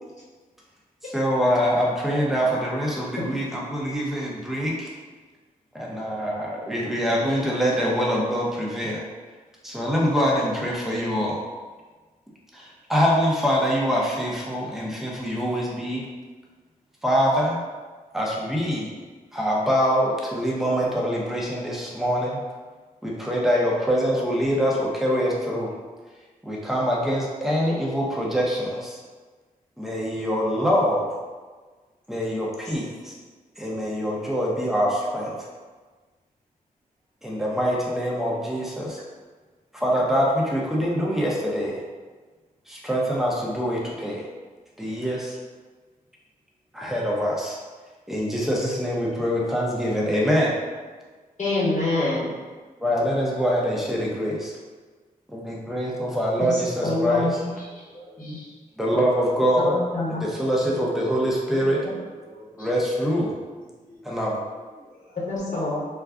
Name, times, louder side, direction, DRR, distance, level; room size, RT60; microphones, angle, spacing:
voice 1, 1.0-4.9 5.7-9.0 9.6-11.4 12.5-16.1 17.0-17.6 18.1-18.9 19.3-22.4 23.0-25.7 26.4-29.0 29.8-31.2 32.1-33.1 33.6-35.3 37.2-39.0 39.7-41.8 42.7-44.3 44.8-45.4 46.7-47.6 48.1-50.5 52.8-54.6 55.3-57.4 58.8-59.7 60.2-61.8 62.6-63.3 64.0-64.4, equal, ahead, -4 dB, 0.8 m, -24 dB
voice 2, 51.4-52.3 56.4-57.5 58.2-58.4 59.6-60.3 61.8-61.9 65.3-65.8, left 2 dB, 50° left, -6 dB, 1.1 m, -26 dB
voice 3, 56.7-57.3 57.6-58.5 59.2-59.3 61.9-62.0 62.2-62.7 63.9-64.2 64.8-65.2, left 1 dB, 70° left, -6 dB, 0.7 m, -46 dB
2.4 x 2.2 x 3.5 m, 1.4 s
cardioid pair, 60°, 15 cm